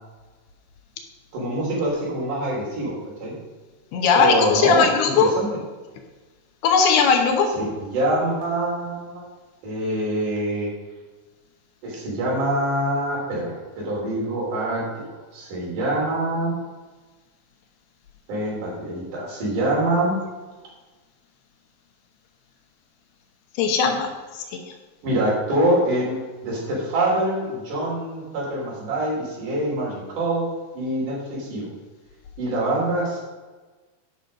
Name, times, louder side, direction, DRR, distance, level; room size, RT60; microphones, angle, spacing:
voice 1, 1.3-3.3 4.1-5.5 7.5-9.2 9.6-10.7 11.8-16.6 18.3-20.2 25.0-30.5 30.7-31.7 32.4-33.2, right 1 dB, 55° right, -5 dB, 4.8 m, -25 dB
voice 2, 3.9-5.3 6.6-7.5 23.6-24.1, left 5 dB, 85° left, 4 dB, 3.0 m, -18 dB
10.5 x 6.2 x 5.3 m, 1.3 s
omnidirectional pair, 4.6 m